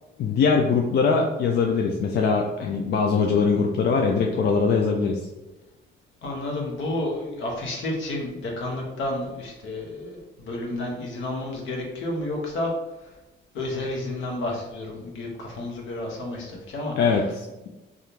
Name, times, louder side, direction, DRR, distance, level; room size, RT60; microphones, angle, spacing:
voice 1, 0.2-5.2 17.0-17.5, left 5 dB, 55° left, 1 dB, 0.4 m, -22 dB
voice 2, 6.2-12.7 13.5-17.0, left 1 dB, 75° left, -1 dB, 0.9 m, -31 dB
3.4 x 2.4 x 2.8 m, 1.0 s
cardioid pair, 90°, 20 cm